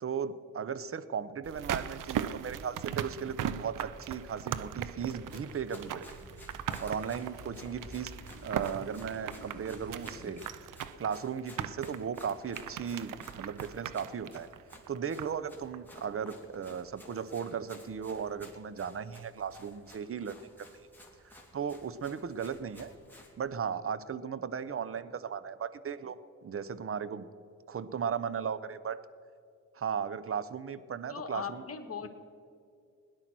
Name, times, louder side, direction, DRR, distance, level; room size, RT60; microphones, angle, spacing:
voice 1, 0.0-6.1 6.8-8.1 8.4-14.5 14.9-20.7 21.2-22.9 23.4-26.2 26.4-27.3 27.7-29.0 29.7-31.6 32.0-32.1, right 7 dB, 45° right, 15 dB, 0.8 m, -36 dB
sound 1, 1.4-15.5 15.7-15.8, right 10 dB, 85° right, 0.6 m, -39 dB
sound 2, 3.3-10.4, right 2 dB, 65° right, 2.7 m, -51 dB
Run, 5.1-23.3, left 1 dB, 5° left, 2.9 m, -55 dB
voice 2, 31.1-32.1, left 6 dB, 50° left, 6 dB, 1.6 m, -39 dB
17.5 x 10.5 x 6.1 m, 2.4 s
cardioid pair, 75°, 31 cm